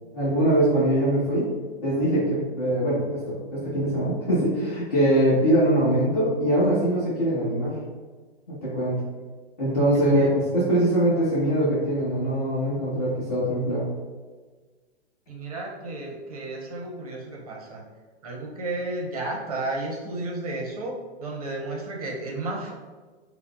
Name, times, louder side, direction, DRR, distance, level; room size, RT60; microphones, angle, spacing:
voice 1, 0.1-1.5 1.8-7.7 8.5-9.0 9.6-13.8, right 1 dB, 35° left, -11 dB, 1.3 m, -22 dB
voice 2, 15.3-17.8 18.2-22.7, right 2 dB, 35° right, -1 dB, 0.6 m, -32 dB
5.5 x 2.0 x 2.4 m, 1.4 s
hypercardioid pair, 180°, 34 cm